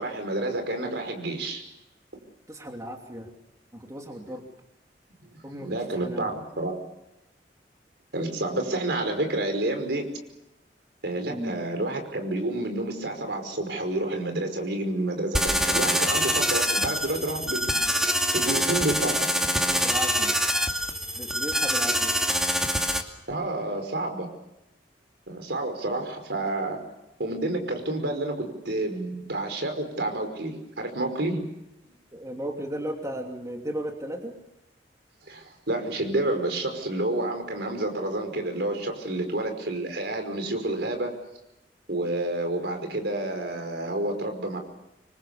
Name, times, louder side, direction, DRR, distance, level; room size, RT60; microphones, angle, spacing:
voice 1, 0.0-1.6 5.6-6.7 8.1-10.1 11.0-17.8 18.3-19.5 23.3-24.3 25.3-26.8 27.2-31.4 35.3-41.1 41.9-44.6, right 2 dB, 70° right, 5 dB, 5.3 m, -29 dB
voice 2, 2.5-3.3 3.7-4.4 5.4-6.3 11.3-11.6 19.7-20.4 21.2-22.2 32.1-34.3, equal, 20° right, 2 dB, 2.8 m, -35 dB
sound 1, 15.3-23.0, equal, 5° right, 2.4 m, -25 dB
27.0 x 25.0 x 7.0 m, 0.91 s
head